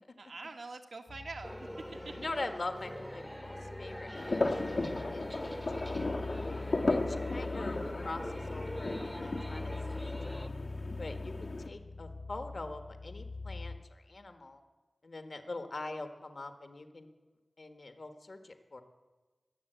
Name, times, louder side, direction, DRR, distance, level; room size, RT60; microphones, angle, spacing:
voice 1, 0.2-2.3, right 3 dB, 75° right, 4 dB, 1.5 m, -45 dB
sound 1, 1.1-13.8, left 3 dB, 90° left, 4.6 m, -43 dB
sound 2, 1.4-10.5, equal, 5° left, 0.9 m, -44 dB
voice 2, 2.2-5.6 6.8-10.4 11.0-14.6 15.0-17.1 17.6-18.8, left 2 dB, 55° left, 7 dB, 1.4 m, -43 dB
sound 3, 4.1-11.7, left 2 dB, 70° left, 1.4 m, -36 dB
20.5 x 7.3 x 8.0 m, 1.3 s
wide cardioid pair, 70°, 0 cm